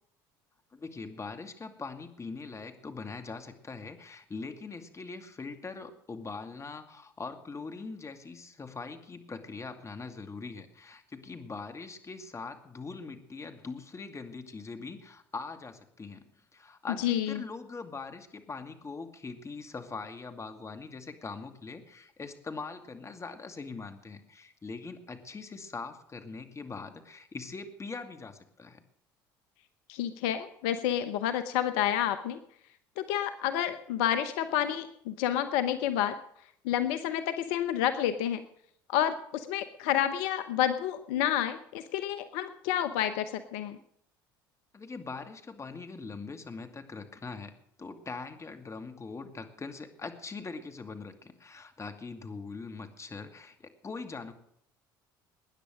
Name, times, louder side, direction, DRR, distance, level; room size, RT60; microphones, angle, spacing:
voice 1, 0.7-28.8 44.7-47.5 47.8-54.3, left 4 dB, 25° left, 7 dB, 2.4 m, -42 dB
voice 2, 17.0-17.4 29.9-32.4 33.0-36.1 36.6-38.4 38.9-43.8, left 11 dB, 70° left, 11 dB, 0.9 m, -29 dB
20.0 x 10.0 x 6.4 m, 0.70 s
hypercardioid pair, 70°, 11 cm